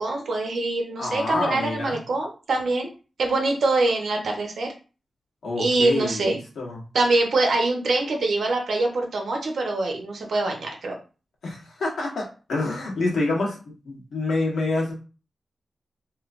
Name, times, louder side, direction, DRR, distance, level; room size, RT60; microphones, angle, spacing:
voice 1, 0.0-2.9 3.2-4.7 5.6-6.4 6.9-11.0, right 2 dB, 80° right, 2 dB, 0.9 m, -24 dB
voice 2, 1.0-2.0 5.4-6.8 11.4-13.6 13.8-14.9, left 2 dB, 85° left, -2 dB, 1.2 m, -27 dB
3.3 x 2.9 x 2.5 m, 0.35 s
wide cardioid pair, 125°, 0 cm